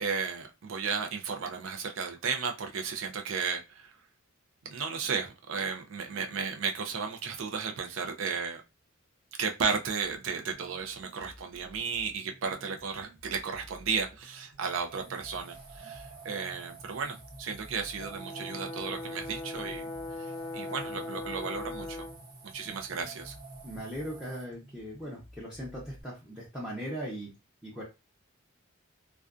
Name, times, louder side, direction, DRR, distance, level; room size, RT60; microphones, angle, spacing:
voice 1, 0.0-3.9 4.6-8.6 9.4-19.8 20.2-22.1 22.5-23.3, right 5 dB, 70° right, 0.4 m, -34 dB
sound 1, 10.0-26.0, equal, 40° right, 0.8 m, -55 dB
sound 2, 14.9-24.4, right 3 dB, 85° right, 0.9 m, -48 dB
Brass instrument, 18.0-22.2, left 2 dB, 55° left, 0.4 m, -40 dB
voice 2, 23.6-27.3 27.6-27.8, equal, 5° right, 0.6 m, -39 dB
2.4 x 2.2 x 2.4 m
head